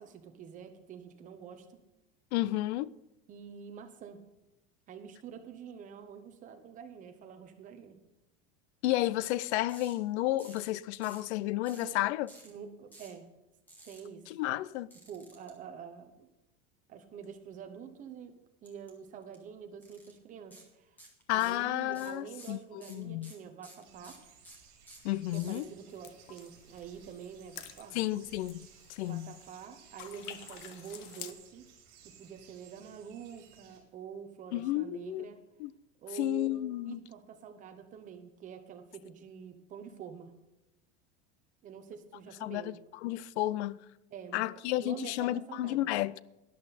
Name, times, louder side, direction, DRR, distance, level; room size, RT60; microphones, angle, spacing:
voice 1, 0.0-1.8 3.3-4.2 4.9-8.0 11.8-12.0 12.4-13.2 13.8-14.2 15.1-16.3 16.9-18.3 18.6-21.0 21.3-24.2 25.3-28.0 29.0-31.6 32.0-35.4 36.0-40.3 41.6-42.7 44.1-44.5 44.8-45.9, right 7 dB, 25° right, 1.0 m, -47 dB
voice 2, 2.3-2.9 8.8-12.3 14.3-14.9 21.3-23.3 25.0-25.6 27.9-29.3 34.5-35.3 35.6-35.7 36.2-37.0 42.4-42.7 43.0-43.8 44.3-46.2, left 16 dB, 85° left, 0.5 m, -32 dB
sound 1, 9.7-9.9 10.4-10.7 11.0-11.3 11.7-11.9 12.3-12.5 12.9-13.2 13.7-14.0 14.9-15.5 18.6-18.9 19.2-19.4 19.8-20.1 20.5-20.7 21.0-21.6 21.9-25.6, right 1 dB, 5° left, 1.8 m, -53 dB
sound 2, 23.8-33.8, right 7 dB, 45° right, 3.7 m, -58 dB
sound 3, 25.9-29.7 30.0-31.3, left 10 dB, 55° left, 1.0 m, -50 dB
12.5 x 11.0 x 4.2 m
supercardioid pair, 170°, 33 cm